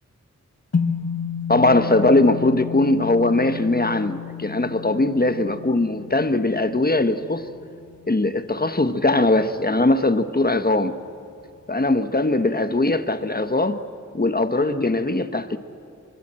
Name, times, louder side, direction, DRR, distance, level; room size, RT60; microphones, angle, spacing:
sound 1, 0.7-9.2, left 6 dB, 55° left, 1.7 m, -32 dB
voice 1, 1.5-7.4 8.1-11.0 11.7-13.8 14.1-15.6, left 2 dB, 30° left, 1.2 m, -20 dB
26.0 x 24.0 x 7.7 m
wide cardioid pair, 65°, 30 cm